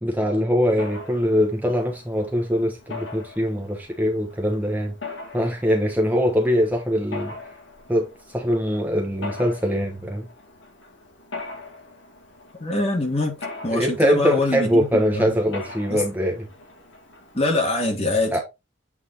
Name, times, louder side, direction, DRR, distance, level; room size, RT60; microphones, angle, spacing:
voice 1, 0.0-4.9 5.3-7.4 7.9-10.3 13.7-16.5 18.3-18.4, equal, 10° right, 1.0 m, -22 dB
Mechanisms, 0.8-17.6, left 3 dB, 75° left, 1.9 m, -41 dB
voice 2, 12.6-13.4 13.6-15.4 15.9-16.0 17.3-18.4, left 2 dB, 35° left, 2.0 m, -24 dB
8.3 x 3.6 x 3.9 m
head